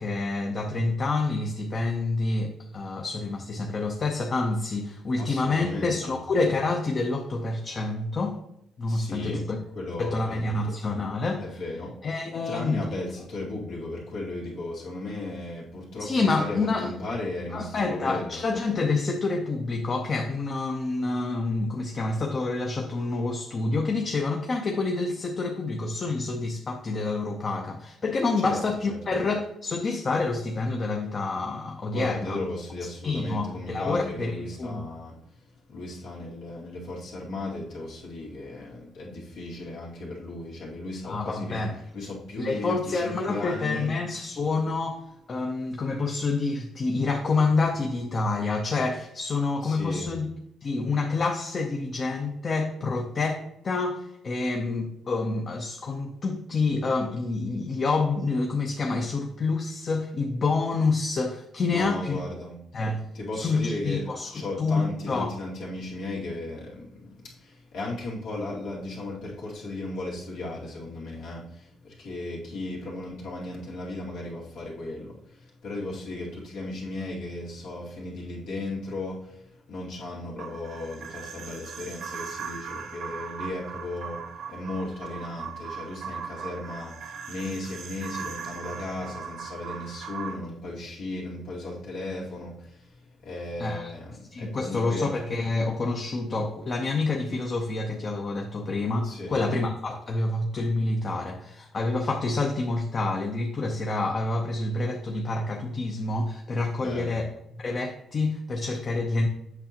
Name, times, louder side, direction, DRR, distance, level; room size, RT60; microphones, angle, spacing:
voice 1, 0.0-8.4 8.8-9.6 10.0-11.6 12.0-12.9 16.0-16.9 17.5-32.4 33.0-34.8 41.0-41.8 42.4-45.0 45.3-50.3 50.6-62.2 62.7-63.0 63.3-65.3 93.6-93.9 94.3-107.3 107.6-109.3, left 3 dB, 45° left, 2 dB, 0.7 m, -28 dB
voice 2, 5.2-6.1 8.9-10.7 11.4-11.9 12.5-18.4 28.4-28.6 28.9-29.0 31.9-35.2 35.7-41.6 41.9-43.9 49.6-50.2 61.7-62.6 63.1-64.0 64.3-95.1 99.0-99.4 106.8-107.2, left 2 dB, 85° left, -5 dB, 2.3 m, -36 dB
sound 1, 80.4-90.3, right 7 dB, 75° right, 1.0 m, -39 dB
8.0 x 5.7 x 2.9 m, 0.80 s
cardioid pair, 90°, 0 cm